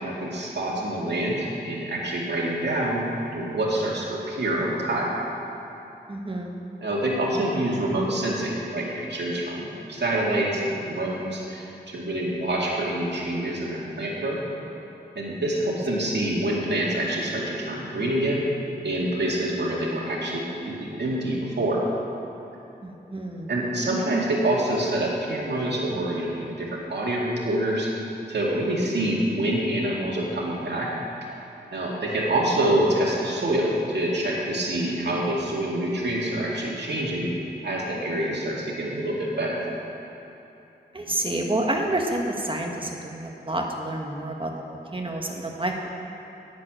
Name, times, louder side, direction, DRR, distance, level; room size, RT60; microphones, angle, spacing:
voice 1, 0.0-3.0 3.3-5.1 6.8-14.4 15.2-18.4 18.8-21.8 23.5-27.9 28.3-30.9 31.7-37.3 37.6-39.6, right 1 dB, 80° right, -4 dB, 2.2 m, -26 dB
voice 2, 6.1-6.5 22.8-23.5 40.9-45.9, right 1 dB, 30° right, 1 dB, 1.5 m, -29 dB
11.0 x 7.7 x 9.0 m, 2.9 s
wide cardioid pair, 85°, 18 cm